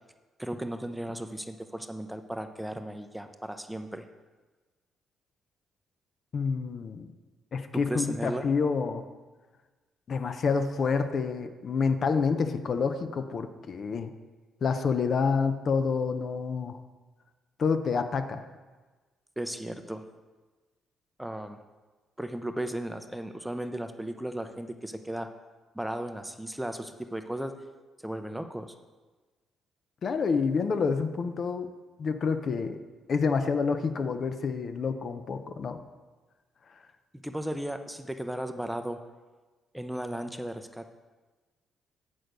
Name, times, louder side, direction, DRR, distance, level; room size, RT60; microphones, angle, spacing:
voice 1, 0.4-4.1 7.7-8.5 19.4-20.0 21.2-21.6 22.2-25.3 25.7-27.5 28.0-28.7 37.2-39.0 39.7-40.9, right 1 dB, 5° right, 7 dB, 0.6 m, -35 dB
voice 2, 6.3-7.1 7.5-9.0 10.1-14.1 14.6-16.8 17.6-18.4 30.0-31.7 32.0-32.8 33.1-35.8, left 5 dB, 50° left, 8 dB, 0.6 m, -28 dB
8.0 x 6.4 x 5.1 m, 1.3 s
cardioid pair, 90°, 0 cm